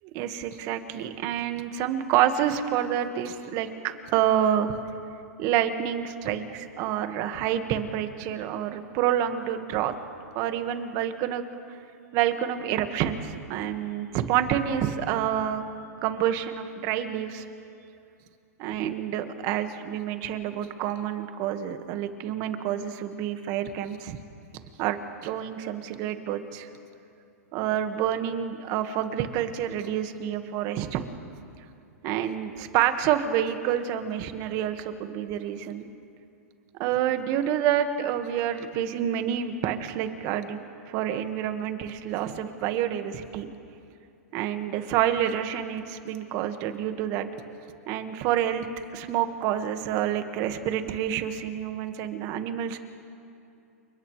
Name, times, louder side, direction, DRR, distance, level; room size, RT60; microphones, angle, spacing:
voice 1, 0.1-4.7 5.4-9.9 10.4-11.4 12.1-15.6 16.0-17.5 18.6-24.2 24.8-26.7 27.5-31.0 32.0-35.9 36.8-40.6 40.9-43.5 44.3-47.3 47.9-48.7 48.9-52.8, right 10 dB, 45° right, 7 dB, 1.7 m, -28 dB
30.0 x 29.5 x 3.3 m, 2.6 s
hypercardioid pair, 125°, 8 cm